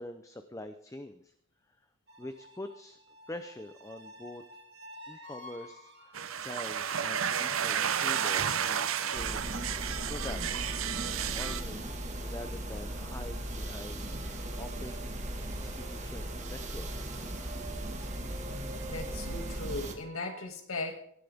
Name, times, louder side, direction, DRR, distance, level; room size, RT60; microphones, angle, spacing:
voice 1, 0.0-1.3 1.7-1.8 2.2-3.0 3.3-4.4 5.0-9.8 10.1-10.7 11.3-15.0 15.4-17.2, left 1 dB, 15° left, 8 dB, 0.6 m, -45 dB
sound 1, 2.1-20.5, right 1 dB, 50° right, 2.2 m, -51 dB
sound 2, 6.1-11.6, right 8 dB, 70° right, 0.8 m, -32 dB
sound 3, 9.1-19.9, right 1 dB, 35° right, 1.7 m, -38 dB
voice 2, 18.9-21.0, left 2 dB, 75° left, 5 dB, 2.2 m, -38 dB
18.0 x 11.5 x 3.6 m, 0.67 s
head